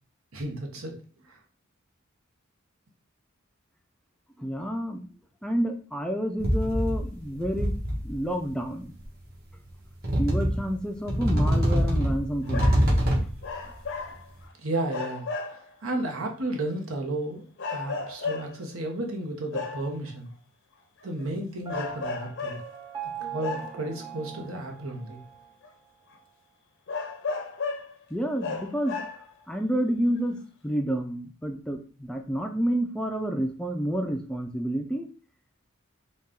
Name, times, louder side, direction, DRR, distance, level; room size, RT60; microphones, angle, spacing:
voice 1, 0.3-1.0 1.3-1.4 14.6-17.5 17.7-20.3 21.0-22.6 23.2-25.2, right 2 dB, 80° right, 2 dB, 1.0 m, -33 dB
voice 2, 4.4-5.0 5.4-7.7 8.0-8.9 10.2-12.7 28.1-29.0 29.5-30.4 30.6-35.1, equal, 5° left, 4 dB, 0.4 m, -29 dB
sound 1, 6.4-7.1 7.4-8.2 9.0-9.1 10.0-10.7 11.1-13.4, equal, 50° right, 1.3 m, -24 dB
sound 2, 12.4-12.9 13.4-14.5 14.9-15.7 16.5-16.6 17.6-18.7 19.5-20.0 21.0-21.2 21.7-22.7 23.4-24.0 24.9-25.0 25.6-25.7 26.1-26.2 26.9-28.0 28.4-29.4 30.2-30.3, left 4 dB, 60° left, 0.6 m, -34 dB
Piano, 21.7-25.5, right 8 dB, 20° right, 0.8 m, -41 dB
4.1 x 2.3 x 3.7 m, 0.39 s
head